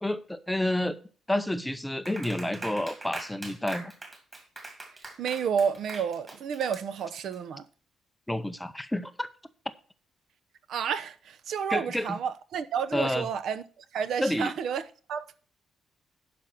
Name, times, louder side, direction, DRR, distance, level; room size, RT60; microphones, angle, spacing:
voice 1, 0.0-1.0 1.3-3.9 8.3-9.3 11.7-12.2 12.9-13.3 14.2-14.5, left 1 dB, 5° left, 0.5 m, -29 dB
Clapping, 2.0-7.3, right 2 dB, 20° right, 2.3 m, -42 dB
voice 2, 5.2-7.7 10.7-15.3, right 7 dB, 60° right, 0.7 m, -31 dB
11.5 x 5.1 x 5.9 m
cardioid pair, 170°, 0 cm